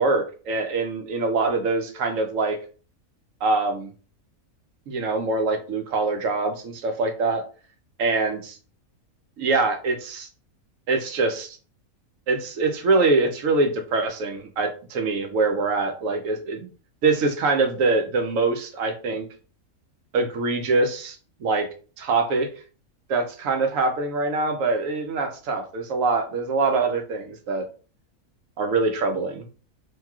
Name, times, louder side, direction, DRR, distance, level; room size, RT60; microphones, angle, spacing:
voice 1, 0.0-2.6 3.4-3.9 4.9-7.4 8.0-8.6 9.4-10.3 10.9-11.6 12.3-16.7 17.0-19.3 20.1-21.2 21.4-21.7 22.0-22.5 23.1-27.6 28.6-29.4, right 3 dB, 70° right, 5 dB, 1.0 m, -24 dB
3.0 x 2.6 x 2.3 m, 0.37 s
omnidirectional pair, 1.5 m